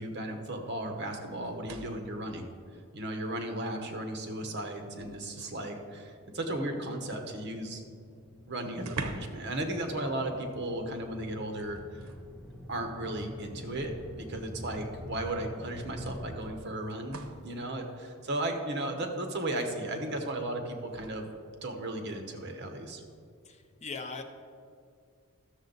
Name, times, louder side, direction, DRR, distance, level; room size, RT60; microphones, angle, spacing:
voice 1, 0.0-2.5 2.9-7.8 8.5-12.0 12.7-21.3 21.6-23.0, right 1 dB, 55° right, 4 dB, 1.0 m, -35 dB
sound 1, 1.4-2.2 3.5-3.6 4.1-5.7 7.8-7.9 8.1-8.2 8.8-9.5 9.8-10.0 11.5-12.3 13.4-13.5 15.1-15.2 16.0-17.5 20.9-21.1, right 3 dB, 85° right, 0.7 m, -44 dB
sound 2, 6.1-16.4, equal, ahead, 0.8 m, -46 dB
voice 2, 23.4-24.2, left 4 dB, 30° left, 5 dB, 0.6 m, -40 dB
13.0 x 6.8 x 3.9 m, 2.2 s
head